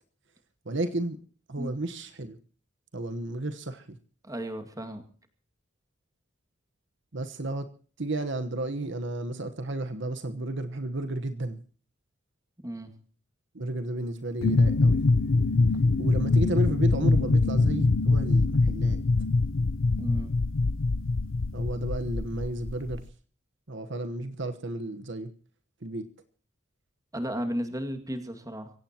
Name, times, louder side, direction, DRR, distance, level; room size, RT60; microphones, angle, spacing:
voice 1, 0.6-1.2 1.5-2.4 2.9-4.0 7.1-7.7 8.0-11.6 13.5-15.0 16.0-19.0 21.5-23.1 23.7-25.3 25.8-26.1, right 2 dB, 60° right, 9 dB, 1.2 m, -32 dB
voice 2, 4.2-5.0 12.6-12.9 20.0-20.3 27.1-28.7, equal, 15° right, 6 dB, 2.2 m, -34 dB
sound 1, 14.4-23.0, left 3 dB, 80° left, 0.7 m, -24 dB
24.0 x 16.5 x 3.0 m, 0.43 s
head